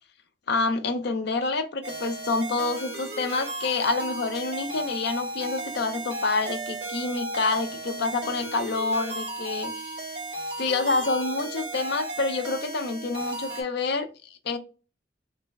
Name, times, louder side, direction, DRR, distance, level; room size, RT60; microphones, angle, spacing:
voice 1, 0.5-10.0 10.6-14.1 14.4-14.6, left 3 dB, 65° left, 0.5 m, -27 dB
sound 1, 1.8-13.6, right 2 dB, 60° right, 1.8 m, -35 dB
3.2 x 2.0 x 3.4 m
head